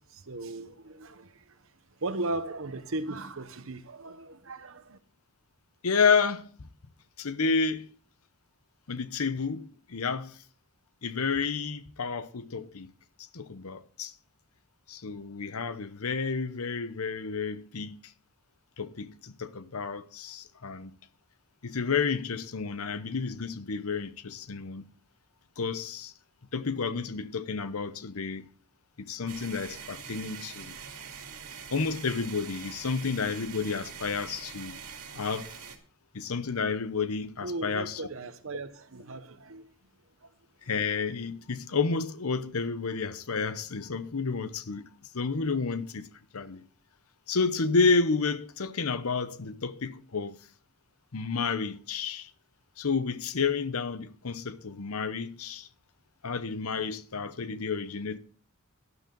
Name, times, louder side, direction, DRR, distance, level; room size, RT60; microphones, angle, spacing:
voice 1, 0.1-1.5 2.0-5.0 37.4-39.6 40.2-40.3, right 2 dB, 65° right, 1.1 m, -37 dB
voice 2, 5.8-6.5 7.2-7.9 8.9-10.4 11.0-12.9 13.3-14.1 14.9-18.0 18.8-20.9 21.6-24.9 25.6-26.1 26.5-28.5 29.0-30.8 31.7-34.8 35.1-35.5 36.1-38.0 40.7-44.8 45.1-46.1 46.3-46.6 47.3-50.4 51.1-52.3 52.8-55.7 56.2-58.2, left 5 dB, 80° left, 0.9 m, -30 dB
sound 1, 29.3-35.8, right 6 dB, 90° right, 2.3 m, -44 dB
12.0 x 11.0 x 3.9 m
head